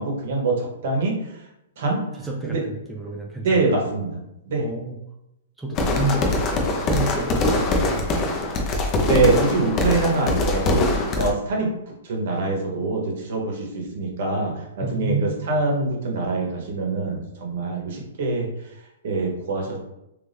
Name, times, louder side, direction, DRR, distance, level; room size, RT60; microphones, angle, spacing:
voice 1, 0.0-1.4 1.8-2.0 2.4-2.6 3.4-4.2 4.5-4.6 9.0-10.8 11.1-11.7 12.0-18.5 19.0-19.8, right 3 dB, 60° right, 0 dB, 1.2 m, -24 dB
voice 2, 2.2-3.8 4.6-5.0 5.6-8.3 14.8-15.5, right 2 dB, 5° right, -3 dB, 0.5 m, -30 dB
sound 1, 5.8-11.3, left 2 dB, 30° left, 0.7 m, -22 dB
3.2 x 2.6 x 3.5 m, 0.86 s
hypercardioid pair, 135°, 0 cm